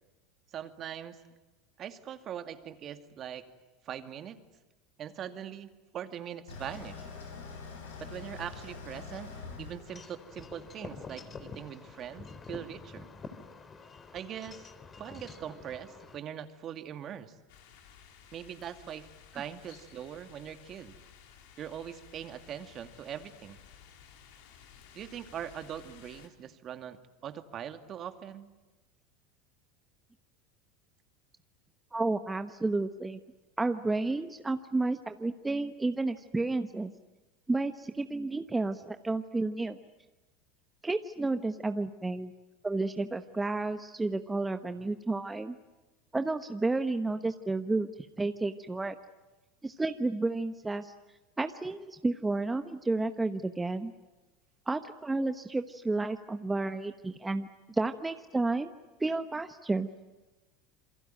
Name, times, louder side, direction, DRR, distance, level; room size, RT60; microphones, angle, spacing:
voice 1, 0.5-1.2 1.8-3.5 3.8-4.4 5.0-7.1 8.0-9.3 9.6-13.1 14.1-14.7 15.0-17.3 18.3-19.1 19.3-20.9 21.6-23.6 24.9-27.0 27.2-28.5, right 9 dB, 40° right, 8 dB, 2.3 m, -41 dB
sound 1, 6.5-11.4, left 4 dB, 90° left, 7.5 m, -45 dB
Wind chime / Wind, 9.9-16.2, left 4 dB, 30° left, 3.2 m, -47 dB
sound 2, 17.5-26.3, left 8 dB, 70° left, 4.3 m, -55 dB
voice 2, 31.9-33.2 33.6-36.9 37.5-39.8 40.8-42.3 42.6-45.6 46.1-48.9 49.6-50.9 51.4-53.9 54.7-58.7 59.0-59.9, right 3 dB, 15° right, 8 dB, 1.1 m, -31 dB
28.0 x 23.0 x 9.2 m, 1.1 s
hypercardioid pair, 95°, 0 cm